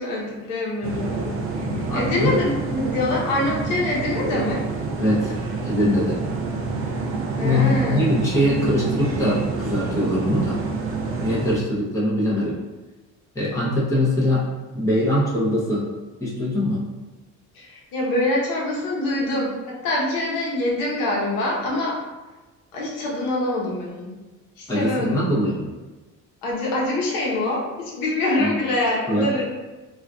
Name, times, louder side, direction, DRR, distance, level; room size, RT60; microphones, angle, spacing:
voice 1, 0.0-4.6 7.4-8.1 17.5-22.0 22.7-24.2 24.6-25.3 26.4-29.4, left 2 dB, 90° left, -4 dB, 0.9 m, -25 dB
sound 1, 0.8-11.6, right 4 dB, 40° right, 0.5 m, -28 dB
voice 2, 1.6-2.4 5.0-5.3 5.6-6.2 7.2-10.6 11.2-12.6 13.3-14.5 14.7-15.9 16.2-16.8 24.7-25.7 28.4-28.5 29.1-29.3, left 1 dB, 10° left, -7 dB, 0.6 m, -22 dB
3.7 x 2.4 x 2.3 m, 1.2 s
cardioid pair, 155°, 33 cm